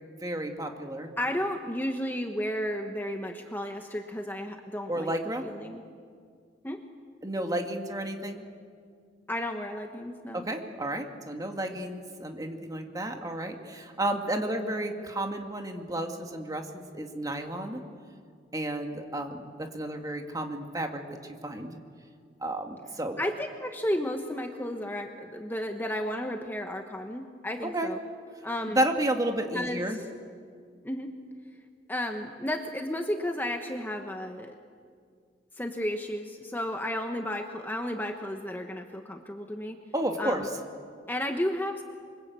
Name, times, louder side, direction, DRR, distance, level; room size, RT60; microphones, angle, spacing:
voice 1, 0.2-1.1 4.9-5.4 7.2-8.5 10.3-17.8 18.5-21.7 22.4-23.2 27.6-27.9 28.7-30.0 39.9-40.4, right 1 dB, 20° right, 3 dB, 2.2 m, -32 dB
voice 2, 1.2-5.1 5.4-5.8 6.6-6.8 9.3-10.4 23.2-28.0 28.4-28.8 29.5-30.0 30.8-31.1 31.9-34.6 35.5-39.8 40.2-40.5 41.1-41.8, left 1 dB, 10° left, 4 dB, 1.2 m, -33 dB
27.5 x 24.0 x 8.4 m, 2.1 s
head